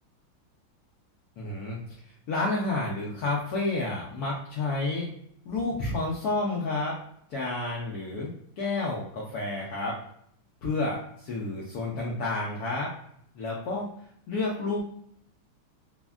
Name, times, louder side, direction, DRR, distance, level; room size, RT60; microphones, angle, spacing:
voice 1, 1.4-1.8 2.3-5.1 5.5-7.0 7.3-10.0 10.6-12.9 13.3-13.9 14.3-14.8, left 2 dB, 80° left, -4 dB, 0.8 m, -30 dB
3.4 x 2.1 x 2.3 m, 0.67 s
omnidirectional pair, 2.3 m